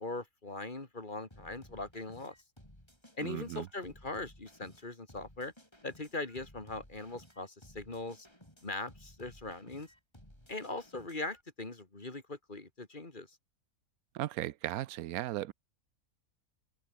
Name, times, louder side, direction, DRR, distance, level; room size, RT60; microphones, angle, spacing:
voice 1, 0.0-2.3 3.2-5.5 5.8-8.3 8.6-9.9 10.5-13.3, left 2 dB, 35° left, 2.7 m, -40 dB
sound 1, 1.3-11.4, equal, 20° left, 8.1 m, -58 dB
voice 2, 3.2-3.7 14.1-15.5, right 14 dB, 90° right, 1.1 m, -36 dB
open air
omnidirectional pair, 1.5 m